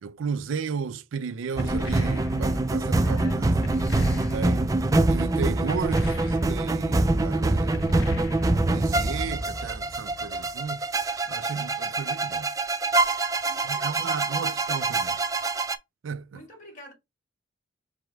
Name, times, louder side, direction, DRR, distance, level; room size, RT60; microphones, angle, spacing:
voice 1, 0.0-3.5 4.2-8.0 8.5-10.8 11.3-12.5 13.6-15.2 16.0-16.4, right 6 dB, 90° right, 0.4 m, -34 dB
sound 1, 1.6-2.7 3.6-4.7 5.7-6.8 7.7-8.8, left 3 dB, 90° left, 0.6 m, -39 dB
sound 2, 1.6-15.8, right 2 dB, 20° right, 0.3 m, -25 dB
voice 2, 3.0-3.5 4.1-4.3 13.4-15.0 16.3-16.9, left 1 dB, 45° left, 2.1 m, -47 dB
4.7 x 2.1 x 4.7 m
head